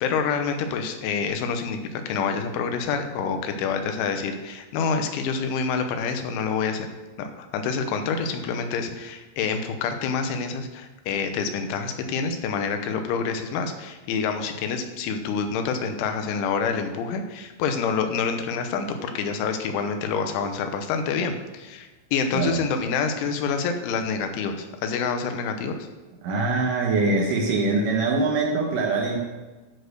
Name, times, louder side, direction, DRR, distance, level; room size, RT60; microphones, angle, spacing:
voice 1, 0.0-6.9 7.2-25.8, left 5 dB, 85° left, 6 dB, 3.3 m, -27 dB
voice 2, 26.2-29.2, right 3 dB, 85° right, -1 dB, 1.8 m, -23 dB
12.5 x 4.4 x 6.5 m, 1.2 s
omnidirectional pair, 5.4 m